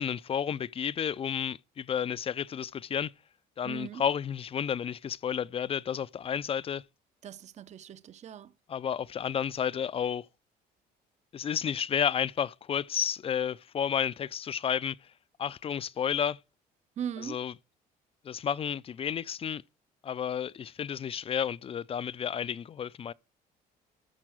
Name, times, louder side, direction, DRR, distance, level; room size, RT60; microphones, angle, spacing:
voice 1, 0.0-3.1 3.6-6.8 8.7-10.3 11.3-15.0 15.4-16.4 17.2-17.5 18.2-19.6 20.0-23.1, left 8 dB, 35° left, 0.4 m, -31 dB
voice 2, 3.6-4.0 7.2-8.5 17.0-17.4, right 9 dB, 45° right, 0.7 m, -39 dB
13.5 x 4.7 x 6.2 m
cardioid pair, 110°, 17 cm